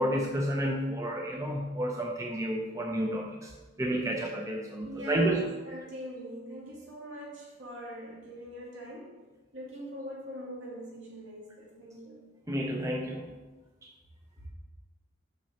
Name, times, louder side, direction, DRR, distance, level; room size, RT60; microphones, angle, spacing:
voice 1, 0.0-3.5 3.8-5.4 12.5-13.3 13.8-13.9, right 1 dB, 15° right, 0 dB, 0.5 m, -30 dB
voice 2, 4.8-9.2 9.5-12.2, equal, 65° right, -5 dB, 2.4 m, -42 dB
6.0 x 6.0 x 4.2 m, 1.2 s
head